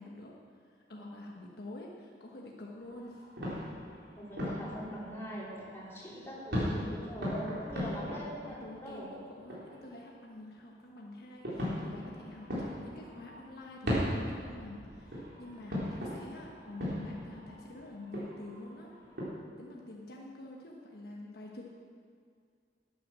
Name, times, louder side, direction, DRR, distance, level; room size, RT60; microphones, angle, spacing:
voice 1, 0.0-3.3 7.7-7.9 8.4-18.9 19.6-21.7, left 1 dB, 60° left, -1 dB, 1.2 m, -47 dB
sound 1, 2.8-5.9 6.2-10.2 11.2-19.2, equal, 70° right, 3.8 m, -38 dB
voice 2, 4.2-8.5 8.8-9.1, equal, 15° left, -7 dB, 3.5 m, -42 dB
12.0 x 9.4 x 6.2 m, 2.2 s
head